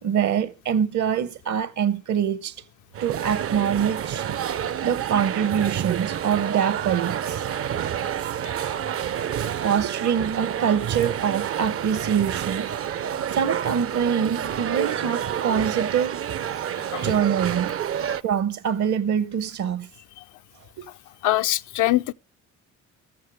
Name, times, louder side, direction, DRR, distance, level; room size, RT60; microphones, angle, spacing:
voice 1, 0.0-2.5 3.0-4.2 4.8-7.5 9.6-12.7 13.3-16.2 17.0-17.8 18.2-19.9 20.8-20.9, right 8 dB, 70° right, 1.1 m, -24 dB
sound 1, 2.9-18.2, right 9 dB, 50° right, 0.5 m, -28 dB
voice 2, 21.2-22.1, left 15 dB, 80° left, 0.5 m, -23 dB
14.5 x 14.0 x 3.4 m
cardioid pair, 90°, 30 cm